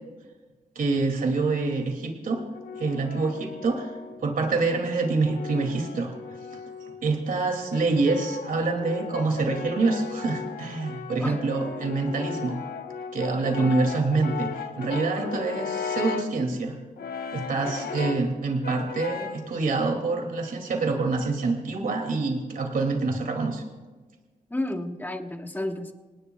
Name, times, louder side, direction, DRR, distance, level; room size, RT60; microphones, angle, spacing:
voice 1, 0.7-2.4 2.8-3.9 4.2-6.4 7.0-12.6 13.1-16.8 17.3-23.6, right 3 dB, 65° right, 3 dB, 2.5 m, -26 dB
Brass instrument, 2.3-4.3 5.0-7.0 7.7-16.4 17.0-18.3 18.6-19.5, left 6 dB, 80° left, 1.1 m, -36 dB
voice 2, 15.2-15.5 24.5-25.9, left 1 dB, 10° left, 4 dB, 1.4 m, -32 dB
28.0 x 18.5 x 2.3 m, 1.3 s
wide cardioid pair, 105°, 16 cm